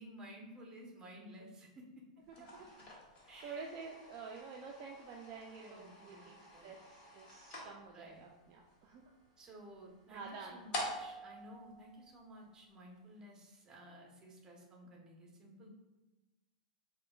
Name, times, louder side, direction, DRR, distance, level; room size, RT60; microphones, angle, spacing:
voice 1, 0.0-2.0 3.3-3.7 5.6-6.8 7.9-8.3 9.4-15.7, equal, 20° right, -1 dB, 0.8 m, -54 dB
sound 1, 2.2-12.6, left 1 dB, 45° left, 1.1 m, -49 dB
voice 2, 3.4-9.1 10.1-10.6, right 5 dB, 45° right, 0 dB, 0.4 m, -49 dB
4.8 x 2.2 x 2.3 m, 1.1 s
hypercardioid pair, 110°, 3 cm